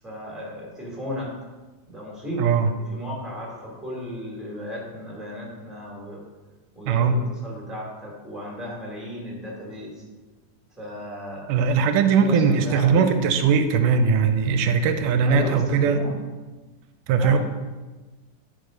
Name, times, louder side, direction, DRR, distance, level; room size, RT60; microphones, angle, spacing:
voice 1, 0.0-1.3 1.9-6.2 6.7-10.0 10.8-11.5 12.1-13.1 15.2-16.2 17.2-17.4, equal, ahead, -4 dB, 1.9 m, -35 dB
voice 2, 2.4-2.7 6.9-7.2 11.5-16.1 17.1-17.4, right 5 dB, 85° right, 9 dB, 2.1 m, -20 dB
11.0 x 4.7 x 5.2 m, 1.3 s
omnidirectional pair, 3.7 m